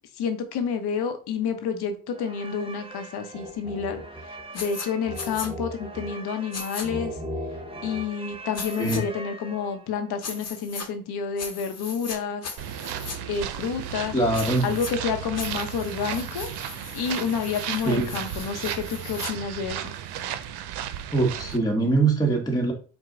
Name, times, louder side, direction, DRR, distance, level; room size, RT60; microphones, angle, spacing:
voice 1, 0.2-4.0 4.5-7.2 7.8-12.5 13.3-14.2 14.6-16.5 16.9-19.9, left 6 dB, 75° left, 7 dB, 0.9 m, -29 dB
sound 1, 2.1-10.0, equal, 15° right, 0.7 m, -38 dB
sound 2, 4.5-4.9 5.1-5.5 6.5-6.9 8.5-9.0 10.2-10.9 11.4-12.2 12.4-13.2 14.3-14.9 15.4-19.3, left 5 dB, 40° left, 1.0 m, -38 dB
sound 3, 12.6-21.6, right 10 dB, 80° right, 0.5 m, -34 dB
voice 2, 14.1-14.7 17.8-18.2 21.1-22.7, right 2 dB, 10° left, 0 dB, 1.0 m, -23 dB
4.8 x 2.2 x 3.7 m, 0.38 s
cardioid pair, 70°, 39 cm